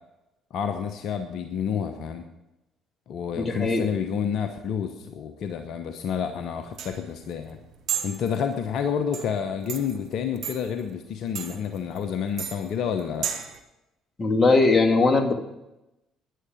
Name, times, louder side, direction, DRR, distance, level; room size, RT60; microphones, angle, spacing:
voice 1, 0.5-2.2 3.1-7.6 8.0-13.3, left 7 dB, 60° left, 7 dB, 0.9 m, -29 dB
voice 2, 3.4-3.9 14.2-15.3, left 3 dB, 30° left, 5 dB, 2.0 m, -20 dB
sound 1, 6.2-13.6, right 9 dB, 60° right, 1.2 m, -36 dB
11.5 x 10.0 x 6.5 m, 0.94 s
hypercardioid pair, 55°, 0 cm